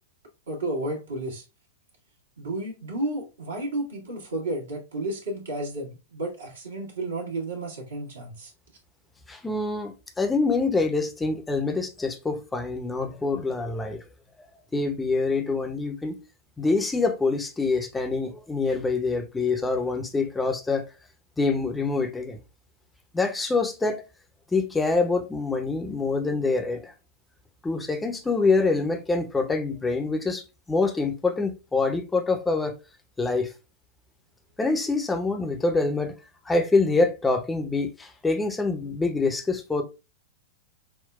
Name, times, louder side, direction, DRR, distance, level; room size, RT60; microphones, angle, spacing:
voice 1, 0.5-1.4 2.4-8.5, right 2 dB, 70° right, 1.4 m, -32 dB
voice 2, 9.3-14.0 14.7-16.2 16.6-20.8 21.4-22.4 23.1-24.0 24.5-26.9 27.6-32.7 33.2-33.5 34.6-36.1 36.5-39.8, left 3 dB, 10° left, 0.7 m, -25 dB
5.8 x 2.2 x 2.3 m
figure-of-eight pair, 100°, 0 cm